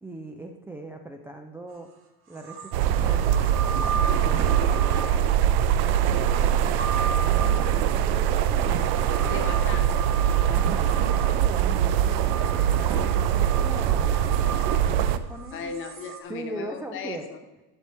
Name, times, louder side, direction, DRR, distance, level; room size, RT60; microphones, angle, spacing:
voice 1, 0.0-1.9 2.3-5.3 5.8-6.8 7.1-9.5 10.5-15.8 16.3-17.3, right 2 dB, 5° right, 3 dB, 0.4 m, -40 dB
sound 1, 1.7-1.8 2.3-16.2, right 5 dB, 40° right, 1.5 m, -36 dB
sound 2, 2.7-15.2, right 10 dB, 75° right, 0.7 m, -23 dB
voice 2, 9.2-10.2 15.5-17.4, left 6 dB, 40° left, 6 dB, 1.2 m, -36 dB
11.0 x 6.0 x 4.3 m, 1.1 s
cardioid pair, 150°, 32 cm